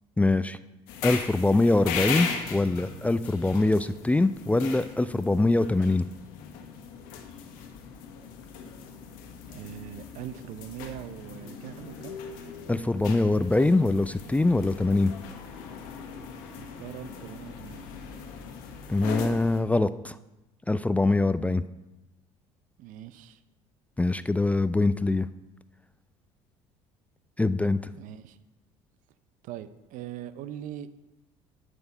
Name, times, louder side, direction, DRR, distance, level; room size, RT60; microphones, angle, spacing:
voice 1, 0.2-0.6 1.0-6.1 12.7-15.1 18.9-20.2 20.7-21.6 24.0-25.3 27.4-27.8, left 2 dB, 10° left, 14 dB, 0.4 m, -23 dB
sound 1, 0.9-19.6, left 6 dB, 70° left, 1.3 m, -38 dB
voice 2, 9.5-12.2 16.6-17.9 22.8-23.4 28.0-28.4 29.4-30.9, right 11 dB, 65° right, 14 dB, 0.6 m, -41 dB
9.5 x 6.1 x 5.5 m, 1.0 s
hypercardioid pair, 70°, 15 cm